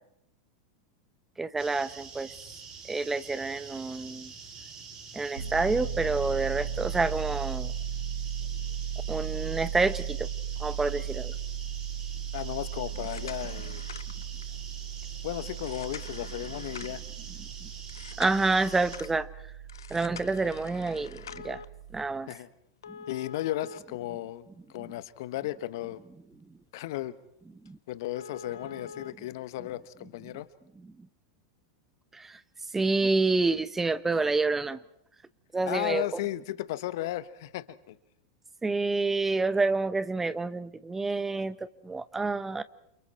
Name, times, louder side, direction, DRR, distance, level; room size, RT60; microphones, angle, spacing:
voice 1, 1.4-2.3 2.9-4.3 5.1-7.7 9.1-10.3 10.6-11.3 18.2-19.3 19.9-21.6 21.9-22.3 27.6-27.8 32.1-32.4 32.7-34.8 35.5-36.1 38.6-41.5 41.8-42.6, right 3 dB, 15° right, 15 dB, 1.0 m, -28 dB
sound 1, 1.6-19.0, right 5 dB, 40° right, 5.7 m, -46 dB
Piano, 5.4-22.0, right 9 dB, 75° right, 2.8 m, -37 dB
voice 2, 12.3-13.8 15.2-17.0 22.3-22.5 23.1-26.0 26.7-27.2 27.9-30.5 35.6-38.0, left 15 dB, 65° left, 14 dB, 1.3 m, -35 dB
sound 2, 12.9-14.6 15.6-17.1 17.9-19.1 19.7-21.7 22.8-24.7 25.1-25.2 25.8-25.9 26.3-26.5 26.7-26.8 27.2-27.3 27.7-27.8 28.1-29.1 30.2-30.3, left 7 dB, 80° left, 1.0 m, -45 dB
29.5 x 28.5 x 4.4 m, 0.76 s
hypercardioid pair, 95°, 2 cm